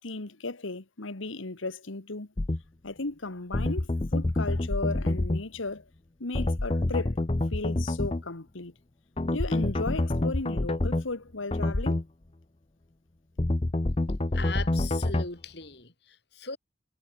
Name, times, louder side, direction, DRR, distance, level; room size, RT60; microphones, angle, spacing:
voice 1, 0.0-2.3 2.8-5.9 6.2-7.2 7.5-8.7 9.3-12.0, left 3 dB, 85° left, 1.6 m, -35 dB
sound 1, 2.4-2.6 3.5-5.4 6.3-8.2 9.2-11.0 11.5-12.0 13.4-15.3, left 2 dB, 30° left, 0.6 m, -27 dB
voice 2, 14.3-16.6, left 4 dB, 55° left, 3.6 m, -39 dB
head